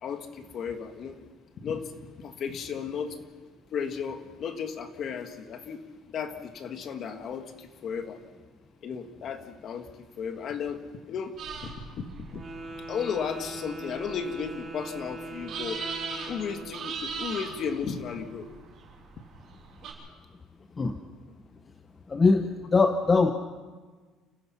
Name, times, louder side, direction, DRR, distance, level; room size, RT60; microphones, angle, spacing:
voice 1, 0.0-1.2 1.6-3.2 3.7-5.8 6.1-8.2 8.8-9.9 10.2-12.4 12.9-15.8 16.3-18.5, left 6 dB, 40° left, 7 dB, 1.7 m, -34 dB
sound 1, 11.4-19.9, right 5 dB, 45° right, 6.7 m, -40 dB
Wind instrument woodwind instrument, 12.3-16.9, right 2 dB, 15° right, 3.8 m, -41 dB
voice 2, 22.1-23.3, left 4 dB, 20° left, 7 dB, 0.8 m, -22 dB
29.5 x 15.0 x 5.8 m, 1.4 s
cardioid pair, 165°, 0 cm